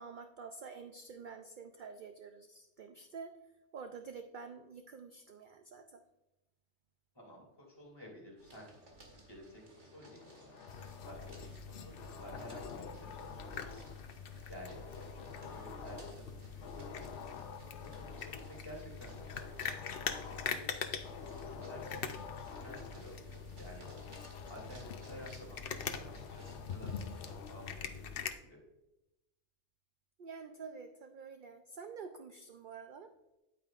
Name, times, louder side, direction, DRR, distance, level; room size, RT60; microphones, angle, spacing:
voice 1, 0.0-3.4 3.7-6.0 30.2-33.1, right 5 dB, 55° right, 7 dB, 0.6 m, -48 dB
voice 2, 7.1-8.7 9.1-9.6 9.9-13.9 14.5-17.3 17.6-19.1 19.4-19.5 20.0-20.7 21.3-23.9 24.5-25.8 26.3-28.1 28.4-28.6, equal, 20° left, -3 dB, 2.8 m, -53 dB
sound 1, 8.4-27.4, right 2 dB, 85° right, 2.2 m, -59 dB
sound 2, 10.0-11.6 12.0-14.0 14.7-16.3 16.6-18.6 19.1-20.7 21.0-23.0 23.8-25.4 25.8-27.8, left 6 dB, 85° left, 1.0 m, -49 dB
sound 3, 10.7-28.3, left 6 dB, 60° left, 0.7 m, -44 dB
9.4 x 8.7 x 2.4 m, 0.95 s
omnidirectional pair, 1.2 m